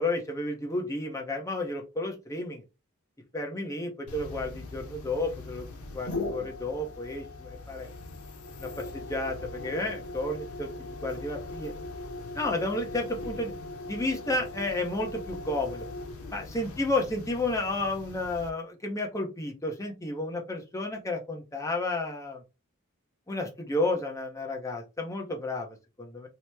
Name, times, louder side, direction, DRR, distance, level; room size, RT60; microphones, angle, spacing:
voice 1, 0.0-2.6 3.3-5.6 5.9-7.9 8.6-11.7 12.3-13.5 13.9-15.9 16.3-22.4 23.3-26.3, left 2 dB, 15° left, 1 dB, 0.6 m, -32 dB
sound 1, 4.1-18.5, left 2 dB, 80° left, 0.6 m, -40 dB
2.9 x 2.0 x 3.3 m, 0.27 s
head